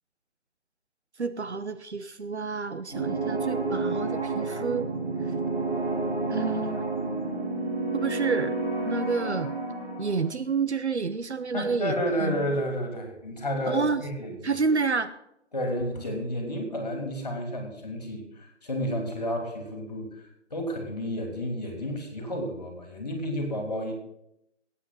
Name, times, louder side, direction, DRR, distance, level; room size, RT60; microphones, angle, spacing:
voice 1, 1.2-4.9 6.3-6.9 7.9-8.6 8.8-9.5 10.0-12.4 13.7-14.0 14.4-15.1, right 4 dB, 70° right, 11 dB, 1.0 m, -29 dB
sound 1, 2.9-10.3, right 3 dB, 5° right, 7.0 m, -30 dB
voice 2, 11.5-14.5 15.5-20.2 20.5-23.9, equal, 35° left, 3 dB, 3.2 m, -31 dB
15.5 x 8.8 x 5.6 m, 0.79 s
figure-of-eight pair, 180°, 35 cm